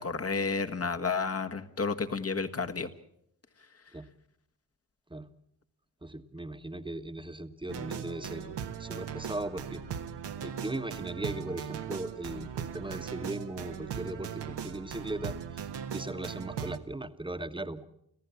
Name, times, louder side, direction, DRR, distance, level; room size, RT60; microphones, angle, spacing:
voice 1, 0.0-2.9, left 4 dB, 35° left, 7 dB, 1.6 m, -31 dB
voice 2, 6.0-9.8 10.4-15.3 15.9-17.9, right 2 dB, 10° right, 9 dB, 1.4 m, -38 dB
sound 1, 7.7-16.8, right 8 dB, 70° right, 1.4 m, -39 dB
27.5 x 14.5 x 7.2 m, 0.74 s
supercardioid pair, 45°, 43 cm